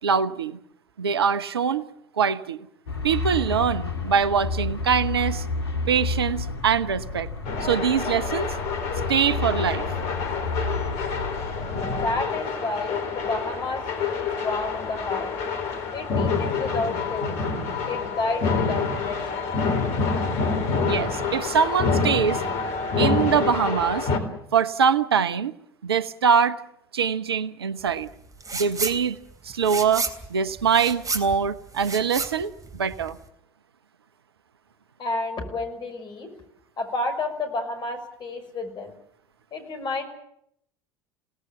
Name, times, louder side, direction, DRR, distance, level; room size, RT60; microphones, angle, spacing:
voice 1, 0.0-0.6 1.0-1.8 2.2-2.7 3.0-5.4 5.9-7.3 7.6-8.5 9.1-9.8 20.8-22.4 23.0-24.1 24.5-25.5 25.8-26.6 26.9-28.1 28.5-29.2 29.4-30.0 30.3-33.2, right 7 dB, 80° right, 15 dB, 0.9 m, -23 dB
sound 1, 2.9-12.2, left 3 dB, 85° left, 1.9 m, -31 dB
sound 2, 7.4-24.2, left 4 dB, 55° left, 4.0 m, -27 dB
voice 2, 11.7-15.3 15.9-17.4 17.9-19.4 35.0-36.3 36.8-38.9 39.5-40.0, left 3 dB, 35° left, 6 dB, 5.8 m, -30 dB
sound 3, 28.4-29.0 29.3-33.2, right 3 dB, 25° right, 3.4 m, -31 dB
28.0 x 18.0 x 7.3 m, 0.73 s
figure-of-eight pair, 70°, 13 cm